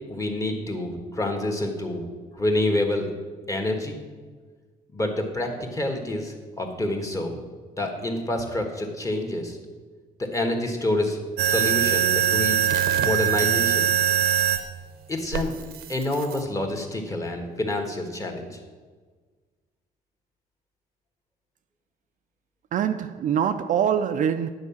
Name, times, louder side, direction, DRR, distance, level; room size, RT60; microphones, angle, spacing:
voice 1, 0.1-2.0 2.3-3.1 3.5-4.0 4.9-7.4 7.8-9.6 10.2-11.2 11.5-12.6 13.0-13.9 15.1-15.5 15.9-18.6, left 1 dB, 20° left, 1.5 m, -27 dB
sound 1, 11.4-14.6 15.3-16.4, right 9 dB, 75° right, 0.8 m, -22 dB
voice 2, 22.7-24.5, right 8 dB, 50° right, 0.4 m, -24 dB
9.6 x 4.8 x 7.1 m
cardioid pair, 110°, 17 cm